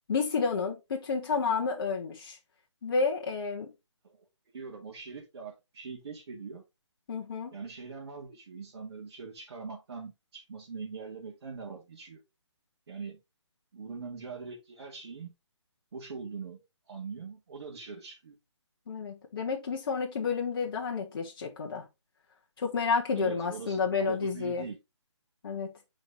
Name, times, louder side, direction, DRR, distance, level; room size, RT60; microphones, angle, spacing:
voice 1, 0.1-2.4 2.8-3.7 7.1-7.5 18.9-21.9 22.6-24.7 25.4-25.7, left 5 dB, 50° left, 1.5 m, -30 dB
voice 2, 4.5-6.6 7.5-12.2 12.9-13.2 13.7-15.3 15.9-16.6 16.9-18.3 23.2-24.8, right 5 dB, 55° right, 2.1 m, -42 dB
7.9 x 4.8 x 2.7 m
figure-of-eight pair, 150°, 15 cm